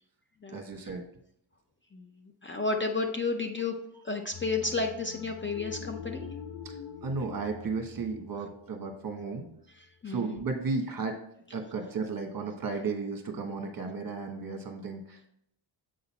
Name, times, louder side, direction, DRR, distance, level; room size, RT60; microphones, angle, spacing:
voice 1, 0.5-1.0 6.6-6.7 7.0-9.5 10.1-11.2 11.5-15.3, right 4 dB, 45° right, 4 dB, 1.3 m, -34 dB
voice 2, 2.4-3.8 4.0-6.3 10.0-10.4, left 3 dB, 25° left, 3 dB, 0.6 m, -32 dB
sound 1, 4.3-9.6, left 7 dB, 75° left, 0.9 m, -44 dB
7.7 x 3.9 x 4.2 m, 0.71 s
cardioid pair, 115°, 49 cm